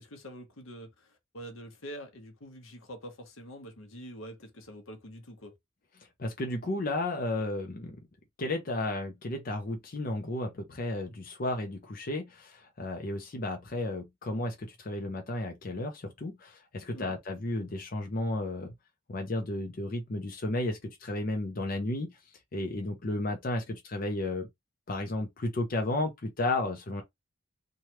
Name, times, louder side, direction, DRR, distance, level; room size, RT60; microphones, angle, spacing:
voice 1, 0.0-5.6 16.9-17.1, equal, 80° left, 0.9 m, -46 dB
voice 2, 6.2-8.0 8.4-18.7 19.1-22.2 22.5-24.5 24.9-27.0, left 2 dB, 45° left, 0.6 m, -33 dB
3.1 x 2.3 x 2.8 m
head